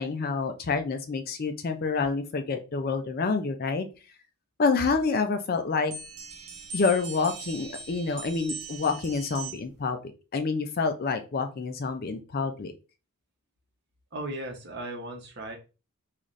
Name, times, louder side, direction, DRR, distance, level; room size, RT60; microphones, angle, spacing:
voice 1, 0.0-3.9 4.6-5.9 6.7-10.0 10.3-12.7, left 4 dB, 40° left, 7 dB, 0.4 m, -28 dB
sound 1, 5.9-9.8, right 3 dB, 85° right, 0.8 m, -40 dB
voice 2, 14.1-15.6, right 1 dB, 50° right, 2 dB, 0.9 m, -36 dB
3.9 x 2.5 x 3.1 m, 0.32 s
head